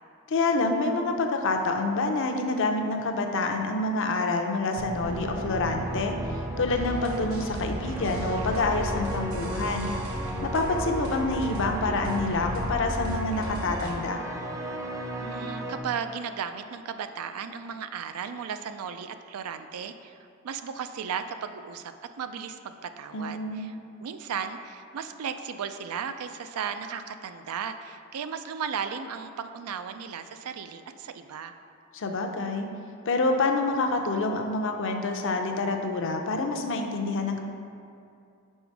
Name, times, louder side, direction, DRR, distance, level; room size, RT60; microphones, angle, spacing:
voice 1, 0.3-6.1 6.6-9.9 10.4-14.2 23.1-23.7 31.9-32.7 33.1-37.4, left 3 dB, 60° left, 4 dB, 0.5 m, -27 dB
sound 1, 4.8-12.8, equal, 45° right, 0.7 m, -38 dB
sound 2, 5.0-15.8, right 1 dB, 15° right, 0.4 m, -36 dB
sound 3, 6.7-13.9, equal, 70° right, 0.9 m, -37 dB
voice 2, 15.2-20.1 20.4-21.9 22.2-23.7 24.0-31.5, right 7 dB, 85° right, 9 dB, 0.4 m, -35 dB
5.5 x 5.0 x 4.6 m, 2.5 s
head